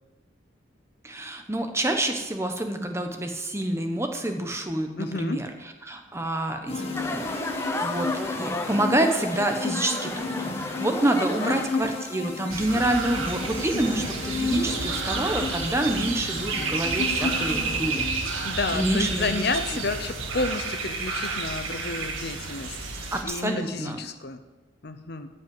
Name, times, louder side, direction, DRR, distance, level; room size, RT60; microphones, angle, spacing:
voice 1, 1.0-5.5 5.8-6.8 7.1-7.3 7.7-10.3 10.8-18.1 18.7-19.4 23.1-24.0, right 1 dB, 15° right, 5 dB, 1.0 m, -27 dB
voice 2, 5.0-5.4 11.2-11.7 18.4-24.4 24.8-25.3, left 3 dB, 50° left, 9 dB, 0.8 m, -31 dB
sound 1, 6.7-18.5, left 3 dB, 30° left, 1.6 m, -33 dB
sound 2, 6.9-11.9, left 2 dB, 15° left, 0.6 m, -33 dB
sound 3, 12.5-23.2, right 4 dB, 80° right, 1.8 m, -30 dB
14.5 x 5.5 x 7.7 m, 1.1 s
head